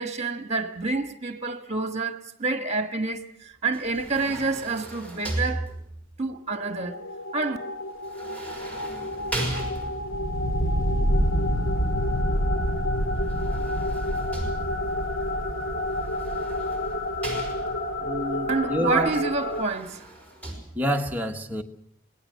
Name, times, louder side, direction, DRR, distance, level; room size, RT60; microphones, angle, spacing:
voice 1, 0.0-5.7 6.2-7.0 7.3-7.6 18.5-20.1, right 3 dB, 30° right, 1.6 m, -28 dB
sound 1, 3.7-6.2 8.0-10.3 13.2-15.0 16.0-18.0 19.4-20.5, right 1 dB, 5° left, 5.5 m, -36 dB
sound 2, 6.5-19.6, equal, 75° left, 2.2 m, -28 dB
voice 2, 18.0-19.1 20.7-21.6, equal, 10° right, 1.3 m, -27 dB
25.5 x 19.0 x 6.6 m
head